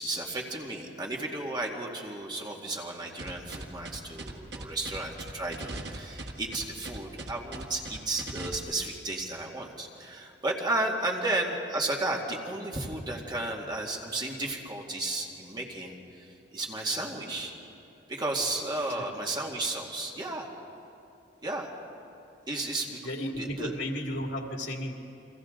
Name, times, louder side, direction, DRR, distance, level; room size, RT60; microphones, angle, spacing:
voice 1, 0.0-17.5 18.1-20.5 21.4-21.7 22.5-23.0 23.4-23.7, right 2 dB, 25° right, -1 dB, 2.2 m, -33 dB
sound 1, 3.2-8.6, right 2 dB, 65° right, 1.7 m, -39 dB
voice 2, 23.0-25.0, equal, 80° left, 2 dB, 2.2 m, -34 dB
29.5 x 23.5 x 3.9 m, 2.8 s
head